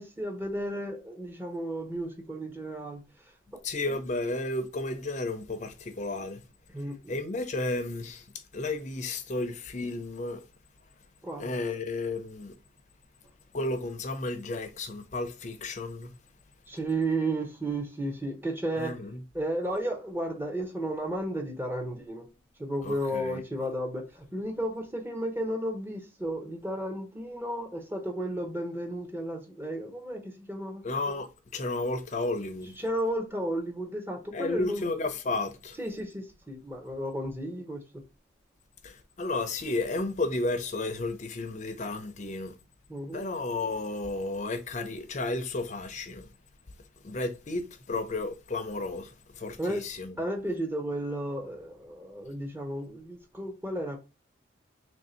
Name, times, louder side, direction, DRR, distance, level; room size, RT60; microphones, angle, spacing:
voice 1, 0.0-3.0 3.9-4.0 6.7-7.0 11.2-11.5 16.7-19.0 19.3-22.3 22.6-30.8 32.8-34.9 35.8-37.8 42.9-43.3 49.6-49.8 50.2-54.0, right 1 dB, 10° right, 0.6 m, -33 dB
voice 2, 3.6-6.4 7.1-8.2 8.5-10.4 11.4-12.5 13.5-16.1 18.8-19.2 22.8-23.4 30.8-31.3 31.5-32.7 34.3-35.8 38.8-42.5 43.1-46.3 47.0-50.1, left 2 dB, 35° left, 0.5 m, -32 dB
3.1 x 2.6 x 4.2 m
head